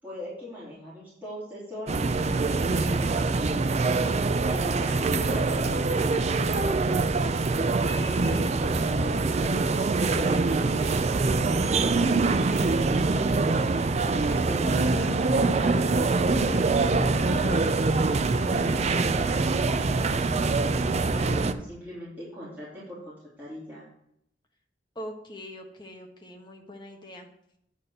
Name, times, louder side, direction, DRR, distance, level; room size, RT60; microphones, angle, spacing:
voice 1, 0.0-2.1 2.7-3.3 4.4-7.1 7.4-7.7 8.0-9.5 9.9-11.0 11.8-16.0 16.2-17.7 18.4-23.9, equal, 10° right, -11 dB, 3.3 m, -40 dB
sound 1, 1.9-21.5, right 3 dB, 40° right, 0.5 m, -24 dB
voice 2, 10.6-10.9 24.9-27.3, equal, 25° left, 2 dB, 1.3 m, -42 dB
sound 2, 14.5-17.7, left 6 dB, 80° left, 0.4 m, -39 dB
9.3 x 4.1 x 6.7 m, 0.74 s
head